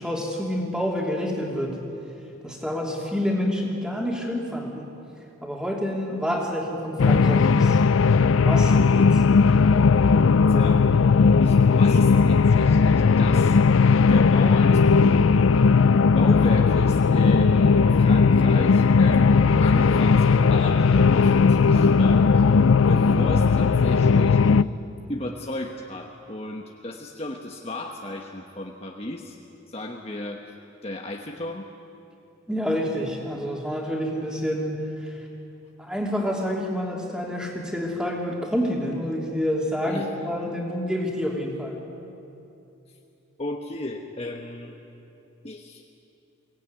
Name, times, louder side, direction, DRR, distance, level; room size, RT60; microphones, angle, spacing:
voice 1, 0.0-1.8 2.4-4.9 5.4-7.8 8.2-9.2 22.9-23.2 32.5-35.2 35.8-41.8, equal, 5° right, -1 dB, 2.9 m, -28 dB
sound 1, 7.0-24.6, left 5 dB, 75° left, 0.5 m, -17 dB
voice 2, 10.5-11.0 11.4-13.6 14.1-15.6 16.1-22.4 22.9-24.4 25.1-29.4 29.7-30.4 30.8-31.7 39.8-40.1 43.4-44.7 45.4-45.8, left 1 dB, 30° left, 2 dB, 1.1 m, -34 dB
23.5 x 17.5 x 9.5 m, 2.8 s
head